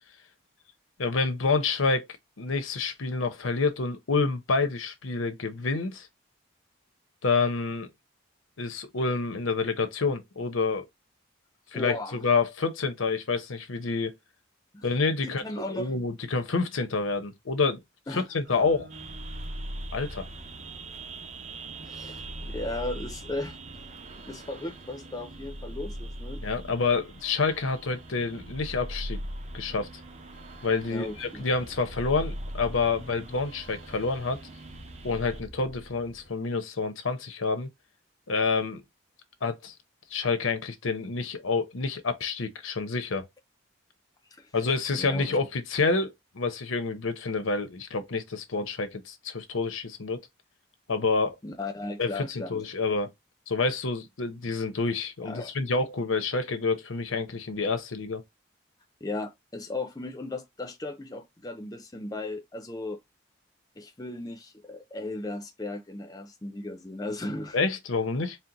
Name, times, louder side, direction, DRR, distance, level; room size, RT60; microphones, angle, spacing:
voice 1, 1.0-2.1 2.4-6.1 7.2-7.9 8.6-10.8 11.7-14.1 14.8-15.4 15.7-17.8 18.1-18.9 19.9-20.3 26.4-29.2 29.5-29.9 30.6-34.4 35.0-37.7 38.3-38.8 39.4-39.7 40.1-43.3 44.5-50.2 50.9-51.4 52.0-53.1 53.5-58.2 67.5-68.4, left 4 dB, 90° left, 0.8 m, -28 dB
voice 2, 11.7-12.2 14.7-14.9 15.2-15.9 18.1-18.2 21.8-23.9 24.3-26.4 30.9-31.4 44.3-44.5 45.0-45.3 51.4-52.6 52.9-53.0 55.2-55.5 59.0-63.0 63.8-67.6, left 2 dB, 20° left, 0.5 m, -36 dB
sound 1, 18.5-36.3, equal, 60° right, 1.0 m, -41 dB
sound 2, 18.9-35.4, right 4 dB, 35° right, 0.6 m, -47 dB
4.4 x 2.1 x 3.9 m
head